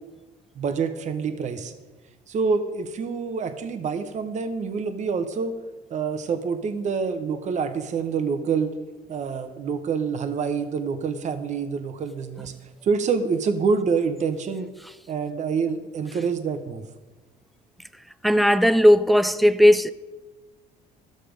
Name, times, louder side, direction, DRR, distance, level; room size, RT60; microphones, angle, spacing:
voice 1, 0.6-1.7 2.3-5.5 5.9-8.7 9.1-12.5 12.8-14.7 15.1-16.8, right 5 dB, 45° right, 0.9 m, -26 dB
voice 2, 18.2-19.9, equal, ahead, 0.4 m, -16 dB
12.5 x 6.5 x 5.1 m
cardioid pair, 110°, 17 cm